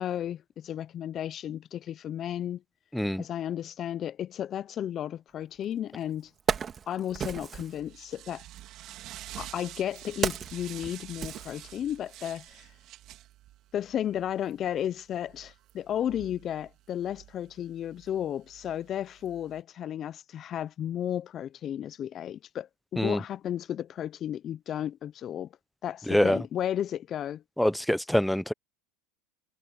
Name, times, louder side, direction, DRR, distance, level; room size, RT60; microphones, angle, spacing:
voice 1, 0.0-2.6 3.2-6.3 6.9-8.4 9.4-12.7 13.7-25.5 25.8-27.4, left 10 dB, 40° left, 0.6 m, -33 dB
voice 2, 2.9-3.2 23.0-23.2 26.1-26.4 27.6-28.5, equal, ahead, 0.7 m, -25 dB
Wood, 5.6-5.7 6.2-7.8 8.8-12.1 12.4-12.6, right 7 dB, 30° right, 2.5 m, -34 dB
sound 1, 7.2-19.6, right 15 dB, 50° right, 3.4 m, -49 dB
supercardioid pair, 105°, 0 cm